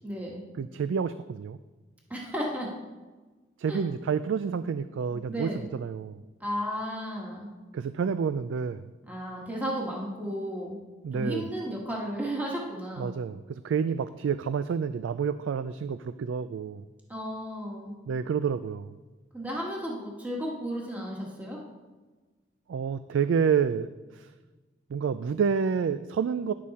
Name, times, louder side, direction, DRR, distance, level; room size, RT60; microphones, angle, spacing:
voice 1, 0.0-0.4 2.1-2.7 3.7-3.8 5.3-5.6 6.4-7.5 9.0-10.8 11.1-13.1 17.1-18.0 19.3-21.6, equal, 10° right, -3 dB, 1.4 m, -33 dB
voice 2, 0.6-1.6 3.6-6.2 7.7-8.8 11.0-11.5 13.0-16.8 18.1-18.9 22.7-23.9 24.1-24.3 24.9-26.5, right 6 dB, 90° right, 13 dB, 0.3 m, -29 dB
11.0 x 7.5 x 4.2 m, 1.3 s
head